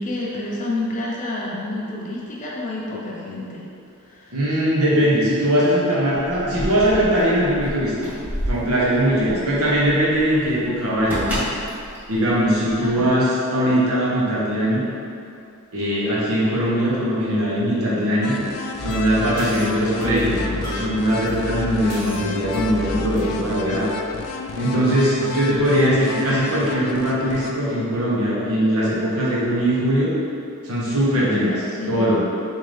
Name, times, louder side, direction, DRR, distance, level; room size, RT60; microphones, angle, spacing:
voice 1, 0.0-3.6 4.0-4.4 6.5-6.6 6.9-7.1 12.8-13.0 31.2-32.1, left 2 dB, 35° left, -5 dB, 0.6 m, -29 dB
voice 2, 4.3-11.4 12.1-14.8 15.7-18.3 18.8-23.9 24.5-30.1 30.6-31.5 31.9-32.3, equal, 85° right, -7 dB, 1.0 m, -20 dB
Keys jangling, 6.2-13.1, equal, 5° right, 0.7 m, -31 dB
sound 1, 18.2-27.5, left 4 dB, 80° left, 0.3 m, -32 dB
sound 2, 18.8-24.4, left 1 dB, 60° right, 0.9 m, -33 dB
3.8 x 2.7 x 3.3 m, 2.5 s
head